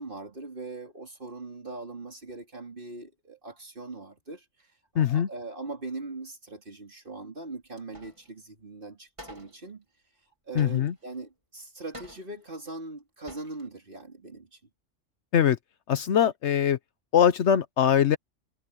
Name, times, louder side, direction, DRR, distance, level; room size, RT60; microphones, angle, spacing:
voice 1, 0.0-9.8 10.4-14.6, right 3 dB, 45° right, 3.4 m, -41 dB
voice 2, 5.0-5.3 10.6-10.9 15.3-15.6 15.9-16.8 17.1-18.2, left 9 dB, 65° left, 1.0 m, -22 dB
sound 1, 7.8-8.3 8.6-8.7 9.2-9.7 10.6-11.2 11.9-12.5 13.0-13.1 13.3-13.7, equal, 25° right, 2.9 m, -48 dB
omnidirectional pair, 1.3 m